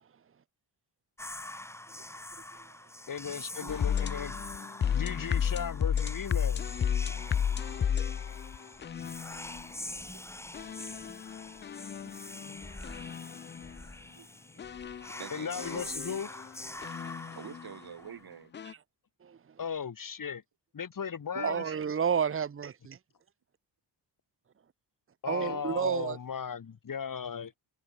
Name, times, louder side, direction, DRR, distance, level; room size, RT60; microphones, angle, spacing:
Whispering, 1.2-18.3, left 1 dB, 5° left, 1.0 m, -45 dB
voice 1, 3.1-4.3 4.9-6.6 15.3-16.3 19.6-20.4 20.7-21.6 25.2-27.6, left 7 dB, 45° left, 5.3 m, -36 dB
sound 1, 3.7-9.7 10.5-13.8 14.6-17.7 18.5-18.7, left 8 dB, 25° left, 0.3 m, -33 dB
voice 2, 7.7-8.0 10.1-10.2 14.2-14.3 14.5-14.7 15.2-16.3 17.3-18.5 21.3-21.5 25.4-25.9, right 8 dB, 55° right, 2.9 m, -46 dB
voice 3, 21.4-23.0 25.3-26.2, right 7 dB, 30° right, 1.1 m, -30 dB
cardioid pair, 115°, 44 cm